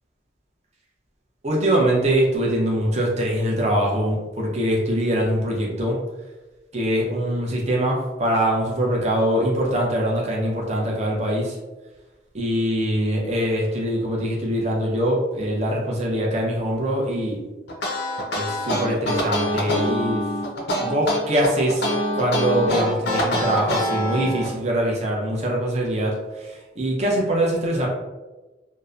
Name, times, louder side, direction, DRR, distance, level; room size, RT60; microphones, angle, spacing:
voice 1, 1.4-6.0 6.7-11.6 12.3-17.4 18.3-20.2 20.8-26.1 26.8-27.9, right 1 dB, 35° right, -2 dB, 0.5 m, -23 dB
sound 1, 17.7-24.5, equal, 60° left, 0.5 m, -24 dB
2.7 x 2.1 x 2.3 m, 1.1 s
head